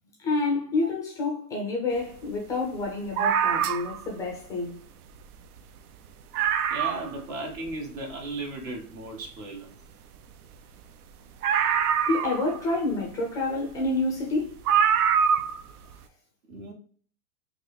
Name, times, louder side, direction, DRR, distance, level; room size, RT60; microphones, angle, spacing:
voice 1, 0.2-4.8 12.1-14.6, left 3 dB, 10° left, 0.3 m, -28 dB
sound 1, 3.2-4.1 5.2-5.3 5.6-5.7 6.0-6.1 6.3-7.2 7.7-7.8 11.4-12.7 13.9-14.0 14.7-15.6 15.9-16.0, right 8 dB, 75° right, 0.6 m, -24 dB
voice 2, 6.7-9.7 16.5-16.7, right 2 dB, 55° right, 1.7 m, -36 dB
3.8 x 2.5 x 3.2 m
hypercardioid pair, 130°, 46 cm